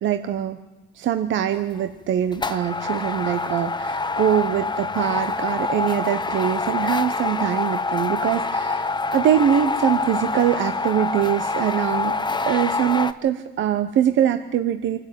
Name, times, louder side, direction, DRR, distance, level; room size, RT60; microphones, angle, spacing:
voice 1, 0.0-0.6 0.9-12.1 12.5-15.0, right 10 dB, 70° right, 9 dB, 1.0 m, -23 dB
sound 1, 1.5-1.8 2.3-13.1, left 3 dB, 20° left, 1.0 m, -26 dB
25.0 x 12.0 x 9.1 m, 1.1 s
cardioid pair, 90°, 20 cm